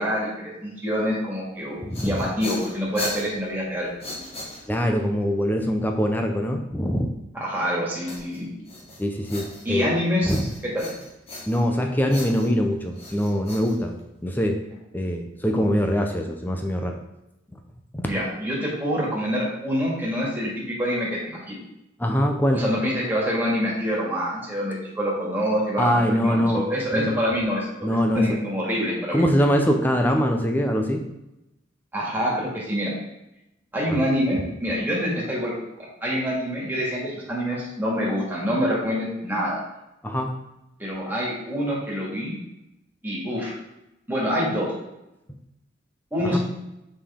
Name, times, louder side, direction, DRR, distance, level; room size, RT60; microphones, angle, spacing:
voice 1, 0.0-3.9 7.3-8.5 9.6-10.9 15.5-15.7 18.1-21.6 22.5-27.9 28.1-29.3 31.9-32.9 33.7-39.6 40.8-42.3 43.0-43.5 44.1-44.7 46.1-46.4, equal, 10° right, -5 dB, 2.2 m, -26 dB
sound 1, 1.6-5.0 8.1-9.9 10.2-11.8 12.1-14.3, left 2 dB, 30° left, 1.5 m, -38 dB
voice 2, 1.8-2.2 4.7-7.1 9.0-9.9 10.3-10.4 11.5-14.0 14.2-14.6 14.9-17.0 17.9-18.1 22.0-22.6 25.8-26.6 26.9-27.1 27.8-28.4 29.1-31.0 33.9-34.0 40.0-40.3 46.2-46.4, equal, 10° left, 3 dB, 0.7 m, -23 dB
6.6 x 5.5 x 3.7 m, 0.90 s
head